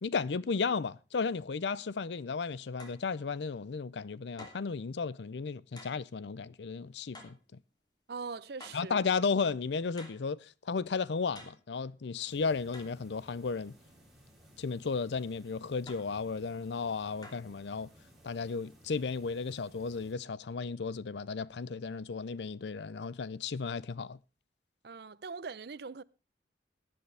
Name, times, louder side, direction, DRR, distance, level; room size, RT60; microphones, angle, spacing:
voice 1, 0.0-7.4 8.7-13.7 14.6-17.9 18.2-24.2, left 5 dB, 75° left, 0.5 m, -34 dB
sound 1, 2.8-3.1 4.4-4.7 5.8-6.0 7.1-7.5 8.6-8.9 10.0-10.3 11.3-11.7 12.7-13.0 15.9-16.2 17.2-17.6, left 2 dB, 25° left, 3.0 m, -50 dB
voice 2, 8.1-9.0 24.8-26.0, right 4 dB, 65° right, 0.6 m, -41 dB
sound 2, 12.3-20.1, equal, ahead, 6.5 m, -59 dB
18.0 x 10.5 x 3.4 m
head